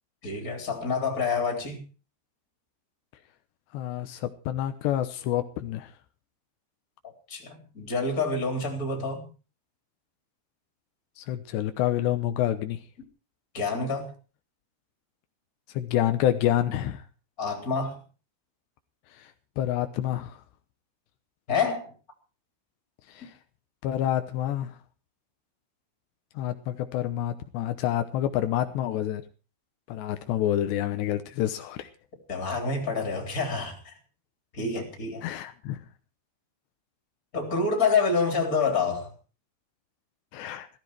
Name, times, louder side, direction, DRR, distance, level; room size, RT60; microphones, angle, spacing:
voice 1, 0.2-1.8 7.3-9.3 13.5-14.1 17.4-18.0 21.5-21.9 32.3-33.8 34.5-35.2 37.3-39.1, left 4 dB, 20° left, 3.7 m, -27 dB
voice 2, 3.7-5.9 11.2-12.8 15.7-17.0 19.2-19.3 19.6-20.4 23.1-23.3 23.8-24.8 26.4-29.2 29.9-31.9 35.2-35.8 40.3-40.7, left 12 dB, 80° left, 3.1 m, -28 dB
15.5 x 15.0 x 4.7 m
omnidirectional pair, 5.0 m